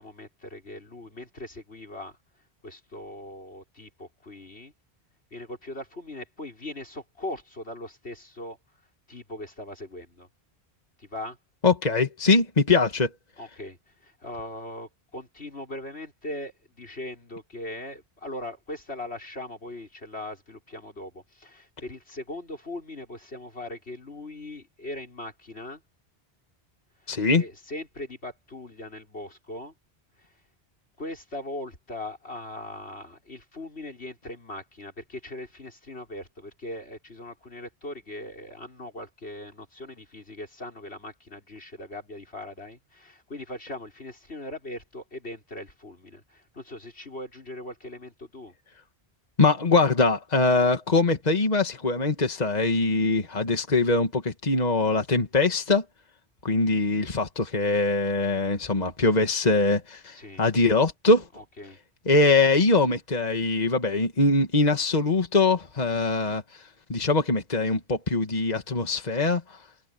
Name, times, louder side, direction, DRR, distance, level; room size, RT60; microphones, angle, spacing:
voice 1, 0.0-2.2 2.6-4.7 5.3-8.6 9.1-10.3 11.0-11.4 13.4-13.8 14.0-25.8 27.3-29.7 30.2-30.3 31.0-48.5 60.1-60.4 61.4-61.8, left 1 dB, 85° left, 6.1 m, -40 dB
voice 2, 11.6-13.1 27.1-27.4 49.4-55.8 56.4-61.3 62.1-66.6 66.9-69.6, left 3 dB, 40° left, 1.9 m, -22 dB
omnidirectional pair, 1.1 m